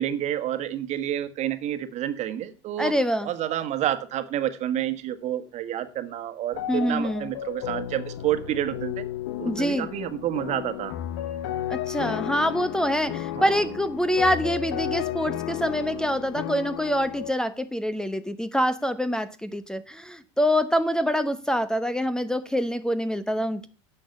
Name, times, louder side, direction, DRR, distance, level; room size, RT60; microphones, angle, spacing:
voice 1, 0.0-2.9 3.2-9.0 9.4-10.9 13.3-13.6, right 11 dB, 50° right, 1.5 m, -29 dB
voice 2, 2.8-3.3 6.7-7.3 9.5-9.9 11.7-23.7, equal, 5° left, 1.0 m, -25 dB
sound 1, 6.5-17.3, left 12 dB, 65° left, 1.1 m, -33 dB
10.5 x 7.0 x 7.1 m
hypercardioid pair, 85°, 15 cm